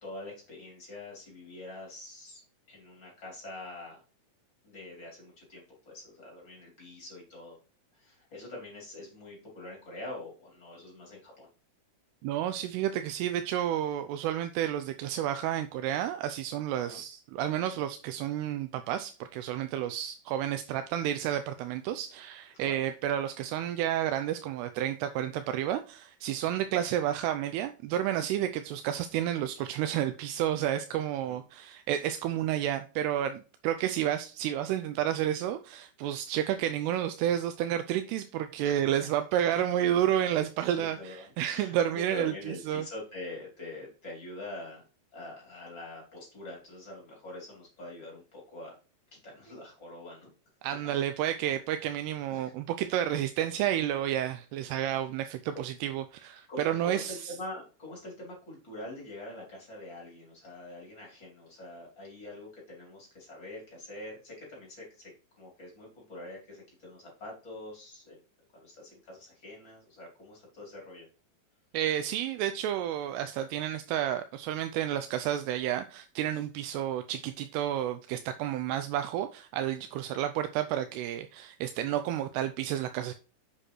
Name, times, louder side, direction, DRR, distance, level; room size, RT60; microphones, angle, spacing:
voice 1, 0.0-2.4 2.7-4.0 4.6-7.6 7.9-11.5 16.8-17.0 19.5-19.9 22.6-22.8 26.5-26.7 31.2-31.4 38.6-38.8 39.3-39.4 40.7-44.9 45.1-48.8 49.1-50.3 52.3-52.5 56.5-68.2 68.5-71.1, left 2 dB, 30° left, 3.4 m, -45 dB
voice 2, 12.2-42.9 50.6-57.3 71.7-83.1, right 11 dB, 85° right, 2.6 m, -31 dB
7.6 x 6.6 x 3.1 m
omnidirectional pair, 4.7 m